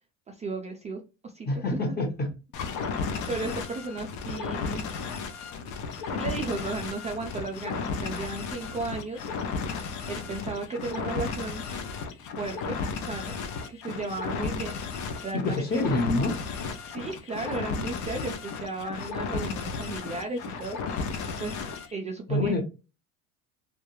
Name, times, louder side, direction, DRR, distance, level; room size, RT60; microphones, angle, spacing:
voice 1, 0.3-2.1 2.9-4.8 6.1-9.2 10.1-11.6 12.4-13.4 13.7-15.8 16.8-22.6, right 3 dB, 20° right, 0.4 m, -35 dB
voice 2, 1.5-2.3 15.4-16.4 22.3-22.6, left 2 dB, 25° left, 0.9 m, -26 dB
sound 1, 2.5-21.9, left 5 dB, 50° left, 0.6 m, -34 dB
2.3 x 2.1 x 3.0 m
hypercardioid pair, 80°, 38 cm